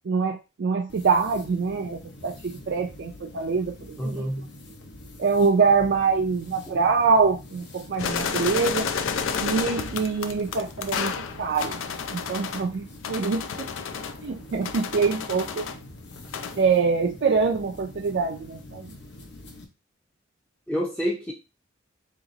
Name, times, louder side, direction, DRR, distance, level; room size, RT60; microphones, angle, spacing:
voice 1, 0.0-4.3 5.2-8.9 9.4-11.1 11.4-11.8 12.1-13.7 14.2-15.7 16.6-18.9, right 5 dB, 60° right, 0.4 m, -24 dB
sound 1, 0.9-19.7, left 1 dB, 60° left, 0.8 m, -45 dB
voice 2, 4.0-4.5 6.7-6.8 20.7-21.3, equal, 5° left, 0.5 m, -28 dB
sound 2, 8.0-12.7 13.0-15.8 16.1-16.6, left 6 dB, 90° left, 0.4 m, -31 dB
2.9 x 2.8 x 3.9 m
head